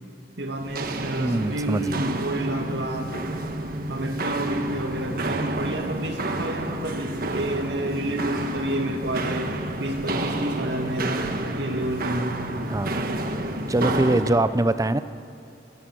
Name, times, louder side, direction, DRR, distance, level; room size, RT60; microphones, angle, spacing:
voice 1, 0.4-3.1 3.9-9.5 9.8-11.3 11.5-12.4, right 1 dB, 80° right, 3 dB, 2.3 m, -29 dB
Walk footsteps, 0.6-14.4, right 2 dB, 55° right, 1.3 m, -30 dB
voice 2, 1.2-2.0 12.7-13.0 13.7-15.0, right 2 dB, 20° right, 13 dB, 0.5 m, -23 dB
23.0 x 20.5 x 6.2 m, 2.6 s
head